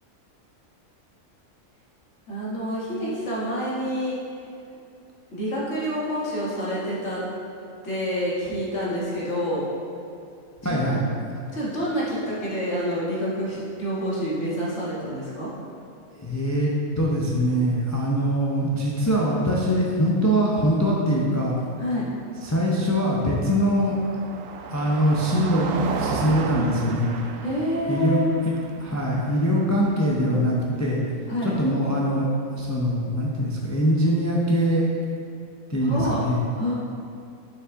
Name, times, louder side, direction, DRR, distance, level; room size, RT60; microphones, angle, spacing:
voice 1, 2.3-4.2 5.3-7.2 7.8-9.7 11.5-15.5 21.8-22.0 27.4-28.3 31.3-31.5 35.8-36.2 36.5-36.7, equal, 55° left, -7 dB, 1.9 m, -27 dB
voice 2, 10.6-11.0 16.1-21.6 22.4-23.9 24.7-27.1 27.9-28.2 28.8-31.0 31.4-32.3 32.5-34.9 35.7-36.4, equal, 20° left, -4 dB, 0.4 m, -23 dB
Car passing by, 21.9-30.1, right 5 dB, 75° right, 0.9 m, -35 dB
6.4 x 6.2 x 3.6 m, 2.5 s
omnidirectional pair, 1.4 m